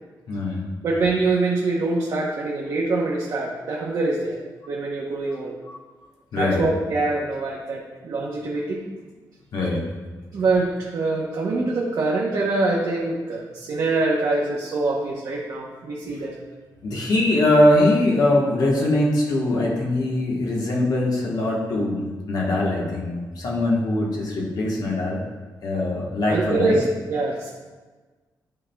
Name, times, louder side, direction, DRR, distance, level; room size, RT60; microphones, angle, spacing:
voice 1, 0.3-0.7 5.7-5.8 6.3-6.7 9.5-9.8 16.8-25.2 25.6-26.8, left 1 dB, 65° left, -2 dB, 1.1 m, -22 dB
voice 2, 0.8-4.4 4.7-5.5 6.4-8.8 10.3-16.3 26.3-27.5, right 3 dB, 60° right, -4 dB, 0.8 m, -24 dB
11.0 x 4.3 x 2.2 m, 1.3 s
wide cardioid pair, 165°, 7 cm